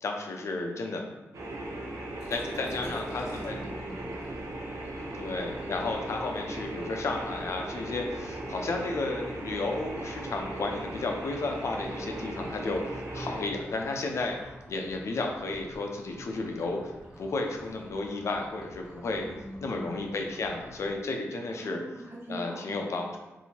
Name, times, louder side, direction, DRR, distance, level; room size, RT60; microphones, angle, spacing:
voice 1, 0.0-1.1 2.3-3.6 5.1-14.4 14.7-16.8 17.2-19.3 19.6-21.8 22.3-23.2, left 3 dB, 65° left, 2 dB, 0.5 m, -33 dB
sound 1, 1.3-13.4, right 1 dB, 70° right, 0.7 m, -38 dB
voice 2, 2.1-4.2 19.2-20.0 21.6-22.8, right 1 dB, 45° right, -5 dB, 1.2 m, -43 dB
sound 2, 2.2-21.0, equal, 15° right, 1.1 m, -50 dB
2.9 x 2.7 x 4.2 m, 1.1 s
wide cardioid pair, 100°, 5 cm